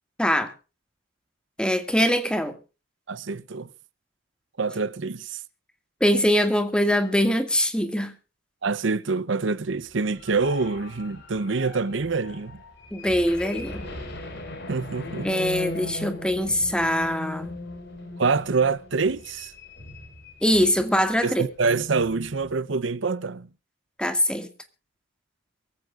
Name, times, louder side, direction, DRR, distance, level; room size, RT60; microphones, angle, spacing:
voice 1, 0.2-0.5 1.6-2.5 6.0-8.1 12.9-13.9 15.2-17.5 20.4-21.4 24.0-24.5, equal, 5° left, 2.0 m, -23 dB
voice 2, 3.1-3.7 4.6-5.4 8.6-12.6 14.7-15.3 18.2-19.5 21.2-23.5, right 4 dB, 70° right, 0.8 m, -26 dB
sound 1, 9.9-20.9 21.2-21.4 21.7-22.5, left 2 dB, 60° left, 4.8 m, -39 dB
23.5 x 14.5 x 2.5 m
head